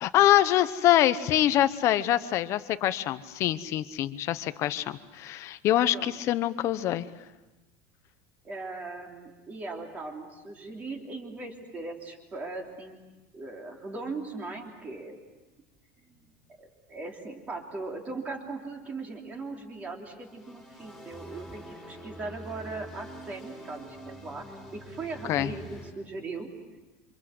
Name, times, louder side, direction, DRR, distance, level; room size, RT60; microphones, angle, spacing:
voice 1, 0.0-7.1 25.3-25.5, left 13 dB, 35° left, 13 dB, 1.0 m, -25 dB
voice 2, 5.9-6.2 8.4-13.0 13.3-15.2 16.0-16.3 16.6-26.5, right 3 dB, 20° right, 2 dB, 3.3 m, -39 dB
sound 1, 20.2-25.9, right 1 dB, ahead, 4.2 m, -45 dB
28.5 x 26.5 x 7.9 m, 1.1 s
cardioid pair, 175°, 8 cm